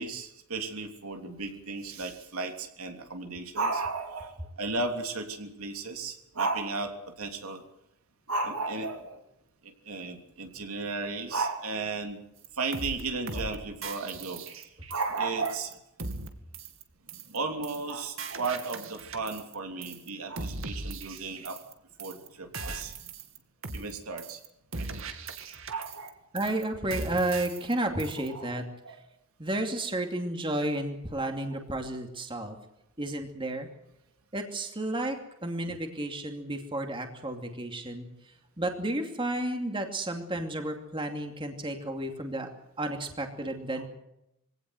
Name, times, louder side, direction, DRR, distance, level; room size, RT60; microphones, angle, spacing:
voice 1, 0.0-7.6 8.3-9.2 9.6-12.2 12.5-14.4 14.9-15.7 17.2-21.6 22.0-23.1 23.7-24.4 24.8-25.1 25.7-26.1 28.3-29.0 31.2-31.3 43.8-43.9, right 3 dB, 80° right, 5 dB, 3.2 m, -34 dB
sound 1, 12.4-12.5 12.7-13.0 13.3-13.6 13.8-15.2 15.5-15.7 16.0-16.3 16.5-16.8 17.1-17.4 17.6-17.9 18.2-19.6 19.8-20.1 20.4-21.7 22.0-22.3 22.5-23.4 23.6-23.9 24.2-24.5 24.7-26.1 26.4-26.6 26.9-27.7 28.0-28.3, right 3 dB, 65° right, 2.4 m, -39 dB
voice 2, 26.3-28.7 29.4-32.6 33.0-33.7 34.3-38.1 38.6-42.5 42.8-43.9, right 1 dB, 25° right, 4 dB, 2.6 m, -32 dB
23.5 x 17.5 x 7.9 m, 0.82 s
head